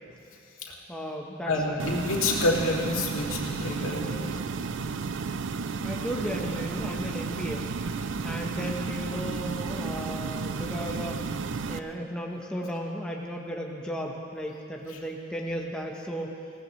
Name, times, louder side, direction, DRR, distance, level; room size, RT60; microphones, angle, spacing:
voice 1, 0.9-1.8 5.8-7.7 8.2-11.2 11.7-16.4, equal, 5° left, -1 dB, 1.0 m, -35 dB
voice 2, 1.5-4.3 14.9-15.0, left 2 dB, 75° left, -3 dB, 2.5 m, -28 dB
sound 1, 1.8-11.8, right 4 dB, 60° right, 0.5 m, -32 dB
20.0 x 18.0 x 3.1 m, 2.5 s
head